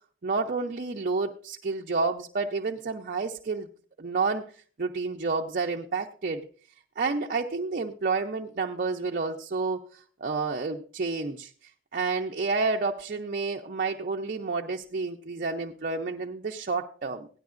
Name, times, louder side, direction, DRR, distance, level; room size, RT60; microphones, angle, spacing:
voice 1, 0.2-3.7 4.0-4.5 4.8-6.5 7.0-17.3, right 4 dB, 50° right, 2 dB, 0.6 m, -30 dB
16.5 x 10.5 x 2.5 m, 0.43 s
head